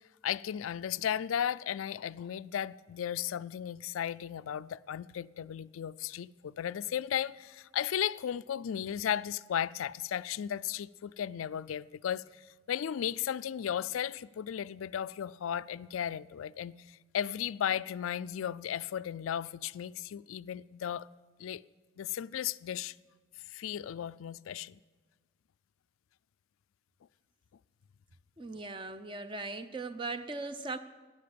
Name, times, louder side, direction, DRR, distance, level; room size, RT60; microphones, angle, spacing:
voice 1, 0.2-12.2 12.7-21.1 21.4-21.6 22.0-22.9 23.5-24.8, left 9 dB, 85° left, 0.4 m, -35 dB
voice 2, 28.4-30.8, right 3 dB, 25° right, 0.6 m, -39 dB
12.5 x 10.5 x 8.7 m
head